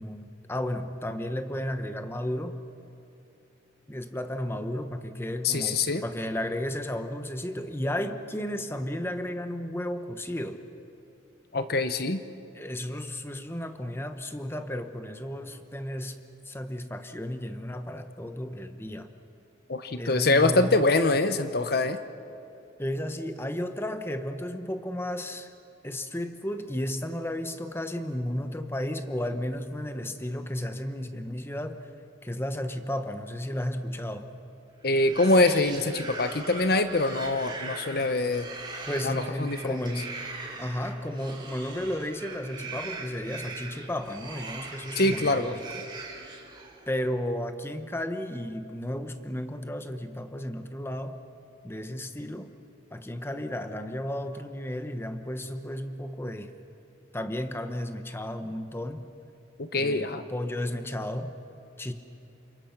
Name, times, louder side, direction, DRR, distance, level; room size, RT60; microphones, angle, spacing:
voice 1, 0.0-2.6 3.9-10.6 12.5-19.1 20.0-20.8 22.8-25.5 25.8-31.9 32.2-34.3 38.9-40.2 40.6-45.6 46.9-51.2 51.6-52.5 52.9-56.5 57.1-59.1 59.8-61.4 61.8-61.9, left 1 dB, 10° left, 8 dB, 1.0 m, -33 dB
voice 2, 5.4-6.0 11.5-12.2 19.7-22.0 34.8-38.5 39.0-39.8 45.0-45.5 59.6-60.2, left 2 dB, 50° left, 10 dB, 0.9 m, -24 dB
sound 1, 34.9-46.9, right 3 dB, 25° right, 4.0 m, -41 dB
29.5 x 27.5 x 6.0 m, 2.8 s
head